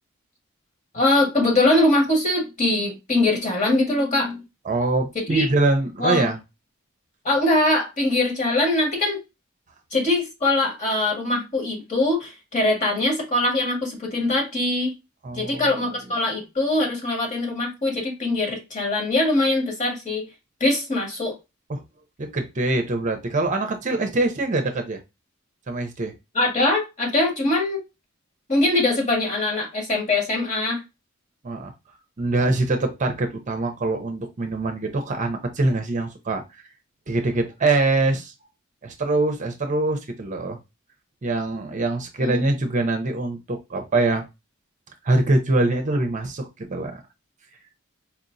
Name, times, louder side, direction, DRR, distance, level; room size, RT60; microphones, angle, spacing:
voice 1, 0.9-4.4 5.1-5.5 6.0-6.3 7.2-9.2 9.9-14.9 15.3-20.2 20.6-21.3 26.3-27.8 28.5-30.8 42.2-42.4, left 2 dB, 40° left, 1.7 m, -22 dB
voice 2, 4.6-6.4 15.2-15.6 21.7-21.8 22.2-25.0 25.7-26.1 31.4-31.7 32.2-36.4 37.1-38.3 38.8-40.6 41.2-44.2 45.0-47.0, right 2 dB, 40° right, 0.6 m, -24 dB
4.4 x 2.9 x 2.6 m
head